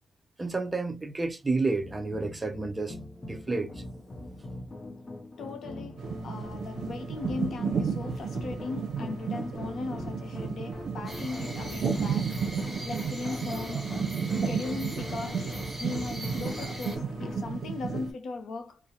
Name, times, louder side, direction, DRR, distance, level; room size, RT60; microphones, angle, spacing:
voice 1, 0.4-3.0 3.2-3.8, right 3 dB, 25° right, 0.5 m, -30 dB
sound 1, 1.8-17.5, left 1 dB, 30° left, 0.6 m, -41 dB
voice 2, 5.4-12.4 12.9-14.1 14.4-18.8, left 4 dB, 75° left, 0.6 m, -38 dB
sound 2, 6.0-18.1, right 6 dB, 75° right, 0.6 m, -33 dB
sound 3, 11.1-17.0, right 1 dB, ahead, 1.0 m, -41 dB
2.4 x 2.0 x 2.7 m
cardioid pair, 100°, 0 cm